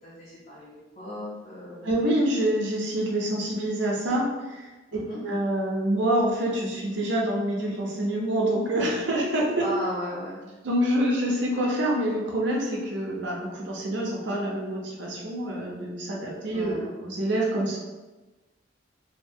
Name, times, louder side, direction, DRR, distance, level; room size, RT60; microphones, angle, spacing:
voice 1, 0.0-1.8 4.9-5.2 9.6-10.4 16.5-17.0, equal, 40° left, -8 dB, 0.6 m, -36 dB
voice 2, 1.8-4.7 5.2-9.6 10.6-17.8, right 1 dB, 65° right, -2 dB, 0.6 m, -26 dB
2.8 x 2.0 x 2.6 m, 1.2 s
head